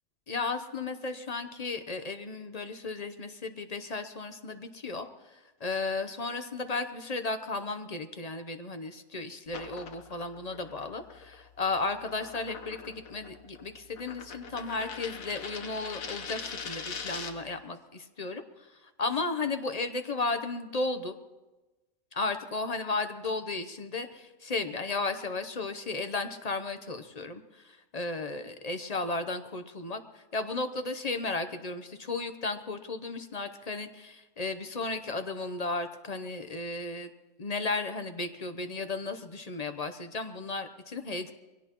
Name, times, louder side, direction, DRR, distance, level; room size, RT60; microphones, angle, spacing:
voice 1, 0.3-18.4 19.0-21.1 22.1-37.1 37.4-41.3, left 3 dB, 35° left, 8 dB, 0.7 m, -34 dB
sound 1, 9.5-17.5, left 5 dB, 75° left, 1.5 m, -42 dB
23.0 x 17.0 x 3.0 m, 1.1 s
omnidirectional pair, 1.4 m